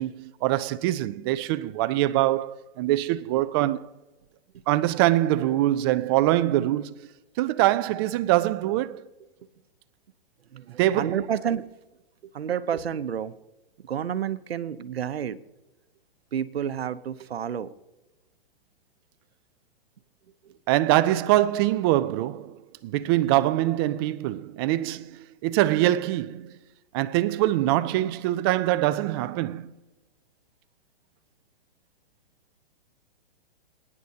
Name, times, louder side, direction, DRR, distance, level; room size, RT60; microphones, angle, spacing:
voice 1, 0.0-3.9 4.7-7.0 7.4-9.0 10.8-11.2 20.7-26.5 26.9-29.7, right 15 dB, 25° right, 0.4 m, -24 dB
voice 2, 10.5-11.7 12.2-13.3 13.8-15.4 16.3-17.7 20.4-20.6, right 8 dB, 90° right, 0.8 m, -30 dB
28.5 x 9.6 x 2.8 m
hypercardioid pair, 135°, 30 cm